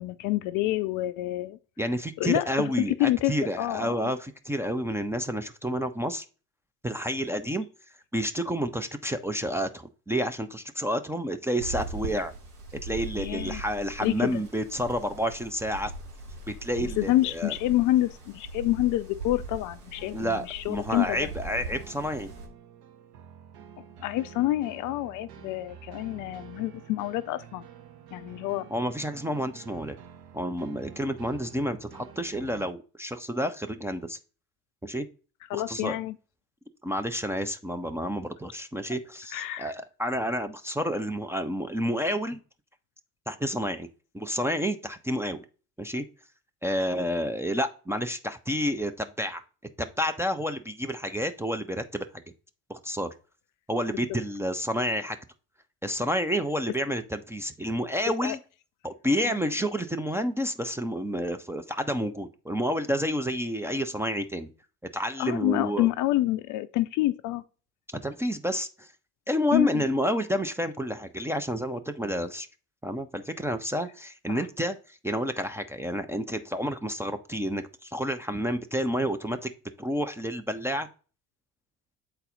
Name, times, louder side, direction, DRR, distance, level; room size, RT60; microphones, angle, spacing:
voice 1, 0.0-1.6 2.2-2.7 3.0-4.1 13.2-13.6 14.0-14.4 16.8-21.3 24.0-27.6 28.1-28.7 35.5-36.2 39.3-39.7 58.2-58.4 59.2-59.4 65.2-67.4 69.5-69.9 74.3-74.4, left 16 dB, 45° left, 0.5 m, -28 dB
voice 2, 1.8-6.2 6.8-7.7 8.1-12.3 12.8-15.9 16.5-17.5 20.1-22.3 28.7-29.9 30.3-34.2 34.8-35.1 35.5-36.0 36.8-42.4 43.3-43.9 44.1-45.5 45.8-46.0 46.6-49.4 49.8-52.1 52.7-53.1 53.7-55.2 55.8-58.4 58.8-64.5 64.9-65.9 68.0-68.9 69.3-72.5 72.8-79.5 79.8-80.9, equal, 5° right, 0.5 m, -30 dB
sound 1, 11.6-22.5, right 2 dB, 80° right, 1.4 m, -40 dB
sound 2, 20.0-32.7, right 8 dB, 55° right, 0.9 m, -49 dB
7.8 x 4.1 x 3.9 m
figure-of-eight pair, 55°, 45 cm